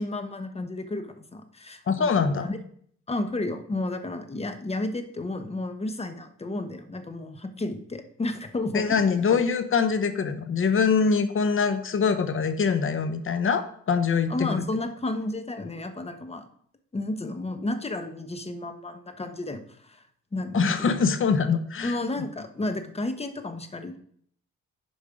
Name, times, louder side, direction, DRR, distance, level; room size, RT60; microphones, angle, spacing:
voice 1, 0.0-2.6 3.1-9.1 14.3-16.5 16.9-20.0 20.3-21.0 21.8-24.0, left 2 dB, 20° left, 8 dB, 1.1 m, -32 dB
voice 2, 1.9-2.5 8.7-14.6 20.5-22.0, left 5 dB, 45° left, 9 dB, 1.1 m, -24 dB
9.6 x 5.3 x 5.1 m, 0.63 s
cardioid pair, 90°, 30 cm